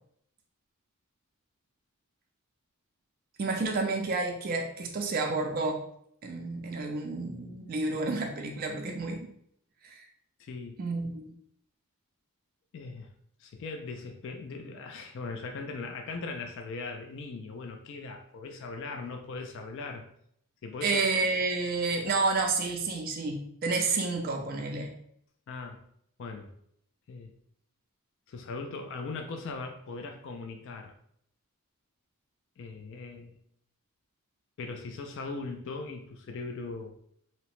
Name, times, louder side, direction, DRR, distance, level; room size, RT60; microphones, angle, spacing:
voice 1, 3.4-5.8 6.2-9.3 9.8-10.0 10.8-11.3 20.8-24.9, right 3 dB, 40° right, 2 dB, 0.3 m, -30 dB
voice 2, 10.4-10.8 12.7-13.1 13.4-20.0 20.6-21.0 25.5-25.8 26.2-26.5 27.1-27.3 28.3-30.9 32.6-33.4 34.6-36.9, left 3 dB, 55° left, 4 dB, 0.3 m, -39 dB
2.8 x 2.1 x 2.9 m, 0.69 s
head